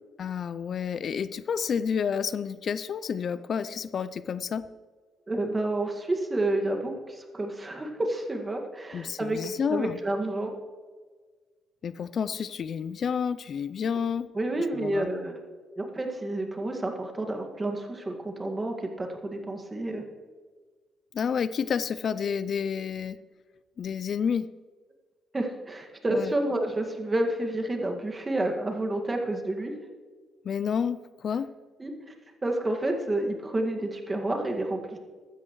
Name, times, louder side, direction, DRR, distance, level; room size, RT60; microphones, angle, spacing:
voice 1, 0.2-4.6 8.9-10.0 11.8-14.3 14.7-15.1 21.1-23.2 23.8-24.5 26.1-26.3 30.4-31.5, left 7 dB, 55° left, 15 dB, 0.4 m, -30 dB
voice 2, 5.3-10.5 14.3-15.4 15.8-20.1 25.3-29.7 31.8-31.9 32.4-35.0, right 1 dB, 25° right, 3 dB, 1.9 m, -29 dB
15.0 x 12.5 x 3.1 m, 1.5 s
cardioid pair, 90°, 0 cm